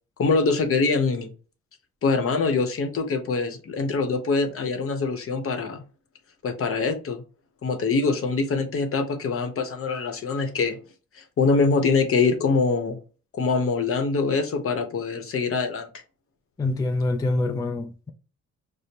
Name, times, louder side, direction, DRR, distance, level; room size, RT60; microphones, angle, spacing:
voice 1, 0.2-1.3 2.0-5.8 6.4-7.2 7.6-10.8 11.1-13.0 13.4-15.9, left 4 dB, 45° left, 0.8 m, -24 dB
voice 2, 16.6-18.1, left 2 dB, 15° left, 0.4 m, -25 dB
5.0 x 2.0 x 2.8 m
cardioid pair, 90°, 30 cm